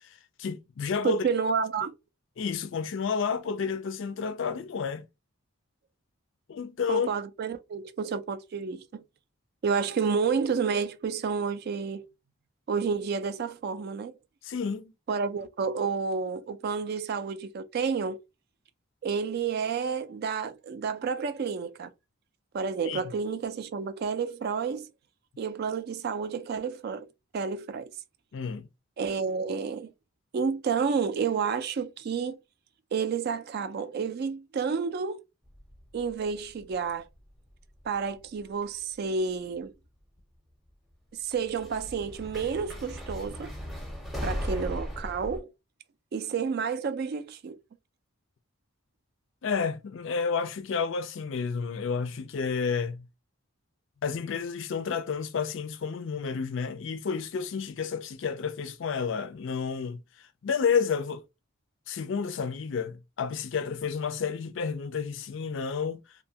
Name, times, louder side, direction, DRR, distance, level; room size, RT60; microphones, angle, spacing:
voice 1, 0.4-1.2 2.4-5.0 6.5-7.1 14.4-14.9 22.9-23.0 28.3-28.7 49.4-53.0 54.0-60.0 60.4-61.2 61.9-66.0, left 6 dB, 60° left, 0.4 m, -30 dB
voice 2, 1.0-1.9 6.9-9.0 9.6-12.1 12.7-14.1 15.1-18.2 19.0-21.9 22.5-24.9 25.4-27.1 27.3-27.9 29.0-29.9 30.3-32.4 32.9-35.2 35.9-37.1 37.9-39.7 41.2-43.5 44.2-45.5 46.1-47.6, right 5 dB, 50° right, 0.3 m, -30 dB
sound 1, 35.4-37.5 37.8-38.5 39.5-39.6 41.3-45.4, equal, ahead, 0.6 m, -37 dB
2.6 x 2.2 x 2.7 m
head